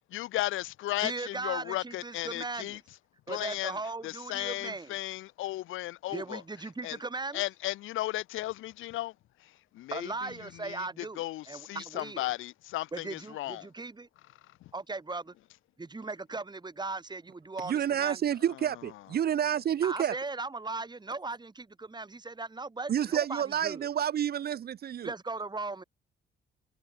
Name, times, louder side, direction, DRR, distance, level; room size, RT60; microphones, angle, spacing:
voice 1, 0.1-2.8 3.3-3.8 4.0-6.4 6.8-7.0 7.3-9.1 9.4-13.7, left 16 dB, 90° left, 2.3 m, -35 dB
voice 2, 1.0-2.8 3.3-5.0 6.1-7.4 9.9-12.3 12.9-14.1 14.7-15.3 15.8-18.2 19.8-23.9 25.0-25.8, right 3 dB, 20° right, 3.3 m, -38 dB
voice 3, 17.6-20.2 22.9-25.1, right 9 dB, 50° right, 0.7 m, -29 dB
cardioid pair, 90°, 20 cm